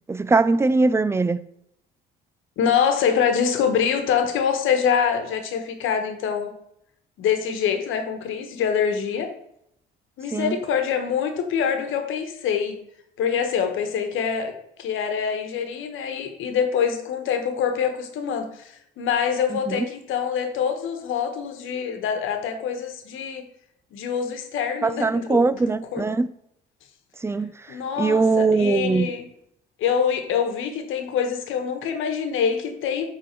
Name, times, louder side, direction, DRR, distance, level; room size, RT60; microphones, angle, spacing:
voice 1, 0.1-1.4 10.3-10.6 19.5-19.9 24.8-26.3 27.2-27.5 28.0-29.1, right 3 dB, 10° right, 0.4 m, -21 dB
voice 2, 2.6-6.5 7.2-9.3 10.2-12.8 13.2-14.5 14.8-23.4 23.9-26.0 27.7-29.2 29.8-33.0, left 7 dB, 70° left, 1.2 m, -25 dB
8.2 x 3.7 x 4.5 m
supercardioid pair, 85°, 21 cm